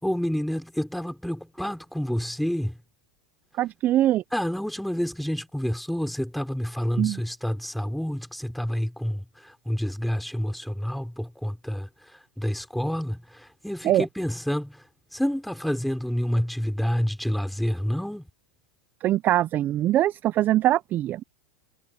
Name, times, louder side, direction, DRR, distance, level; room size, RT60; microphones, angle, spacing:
voice 1, 0.0-2.7 4.3-11.9 12.4-14.8 15.1-18.2, equal, ahead, 3.2 m, -28 dB
voice 2, 3.6-4.2 7.0-7.2 13.8-14.1 19.0-21.2, right 13 dB, 30° right, 0.4 m, -22 dB
supercardioid pair, 135°, 6 cm